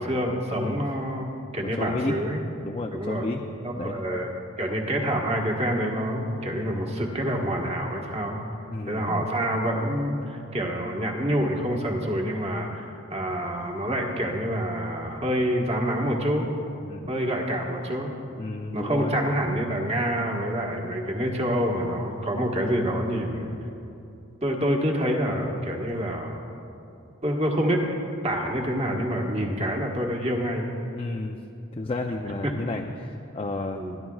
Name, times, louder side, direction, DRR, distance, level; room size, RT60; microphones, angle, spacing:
voice 1, 0.0-2.4 2.9-3.2 3.6-4.3 4.6-8.4 8.9-16.5 17.1-18.1 18.7-23.5 24.4-26.4 27.2-27.8 28.2-30.7 32.4-32.5 33.7-34.0, equal, 30° right, 0 dB, 1.4 m, -27 dB
voice 2, 0.5-0.8 1.7-2.2 2.6-3.5 3.8-4.0 8.7-9.3 16.8-17.1 18.4-19.2 30.9-31.4 31.7-33.8, left 2 dB, 25° left, 2 dB, 0.5 m, -31 dB
30.0 x 11.0 x 2.4 m, 2.7 s
head